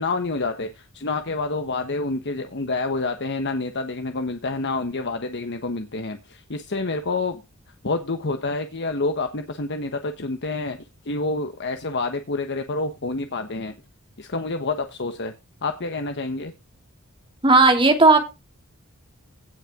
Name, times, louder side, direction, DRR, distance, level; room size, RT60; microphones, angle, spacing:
voice 1, 0.0-7.4 7.8-10.8 11.0-13.7 14.2-15.3 15.6-16.5, left 3 dB, 55° left, 7 dB, 1.2 m, -28 dB
voice 2, 17.4-18.2, right 3 dB, 25° right, 5 dB, 2.6 m, -14 dB
17.0 x 5.7 x 3.7 m, 0.25 s
head